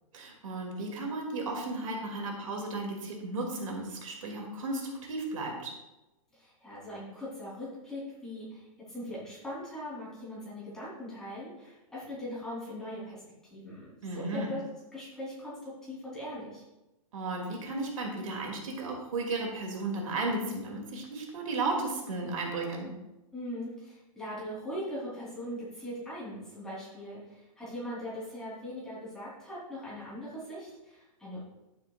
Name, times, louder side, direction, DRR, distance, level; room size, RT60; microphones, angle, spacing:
voice 1, 0.1-5.7 14.0-14.5 17.1-22.9, right 2 dB, 70° right, 0 dB, 2.6 m, -34 dB
voice 2, 6.3-13.2 13.5-14.6 14.9-16.6 23.3-31.4, equal, 5° left, -9 dB, 3.4 m, -40 dB
11.0 x 9.3 x 2.5 m, 0.98 s
hypercardioid pair, 165°, 18 cm